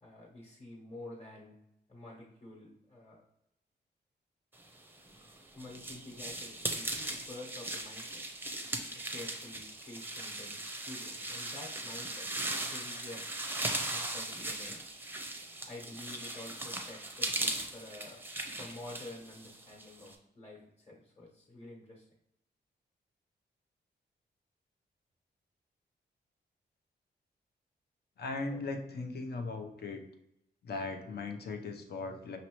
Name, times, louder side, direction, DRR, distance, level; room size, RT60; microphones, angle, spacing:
voice 1, 0.0-1.6 1.9-3.2 5.5-8.2 9.1-12.3 12.6-13.5 13.9-14.8 15.7-18.2 18.5-22.0 28.5-28.6, left 2 dB, 35° left, -4 dB, 1.1 m, -49 dB
sound 1, 5.0-20.1, right 1 dB, 10° right, 0.6 m, -38 dB
voice 2, 28.2-30.0 30.6-32.4, left 3 dB, 65° left, 4 dB, 0.7 m, -38 dB
5.2 x 3.0 x 3.0 m, 0.83 s
cardioid pair, 90°, 18 cm